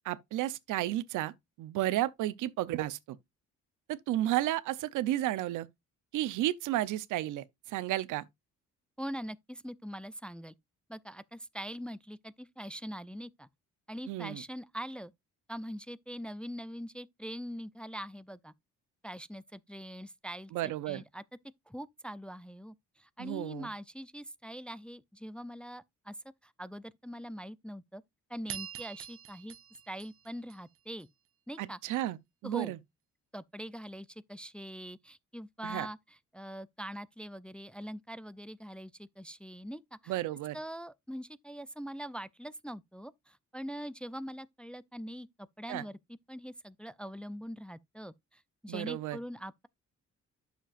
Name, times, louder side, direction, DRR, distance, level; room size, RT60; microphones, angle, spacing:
voice 1, 0.0-1.3 1.6-3.2 3.9-5.7 6.1-8.2 14.1-14.4 20.5-21.0 23.2-23.7 31.6-32.8 35.6-35.9 40.1-40.6 45.7-45.8 48.7-49.2, right 14 dB, 90° right, 0.7 m, -32 dB
voice 2, 9.0-10.5 10.9-13.5 13.9-15.1 15.5-18.5 19.0-21.2 21.7-26.2 26.4-28.0 28.3-29.5 29.9-31.1 31.5-31.8 32.4-32.7 33.3-40.2 40.5-46.0 46.3-49.7, equal, 5° left, 0.3 m, -43 dB
sound 1, 28.5-31.1, right 10 dB, 50° right, 0.5 m, -45 dB
10.0 x 6.8 x 2.5 m
cardioid pair, 90°, 30 cm